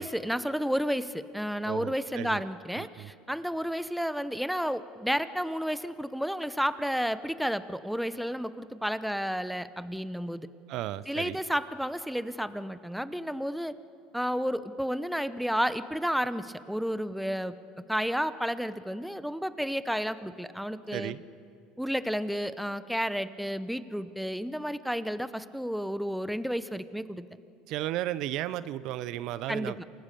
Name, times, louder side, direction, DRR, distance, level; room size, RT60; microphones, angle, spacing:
voice 1, 0.0-10.5 11.1-13.7 14.1-17.5 17.9-21.1 21.8-27.3 29.5-29.7, equal, ahead, 13 dB, 0.9 m, -31 dB
voice 2, 1.6-2.4 2.8-3.1 10.7-11.4 20.9-21.2 27.7-29.8, right 14 dB, 65° right, 16 dB, 0.6 m, -34 dB
28.5 x 16.5 x 6.9 m, 2.5 s
hypercardioid pair, 80°, 0 cm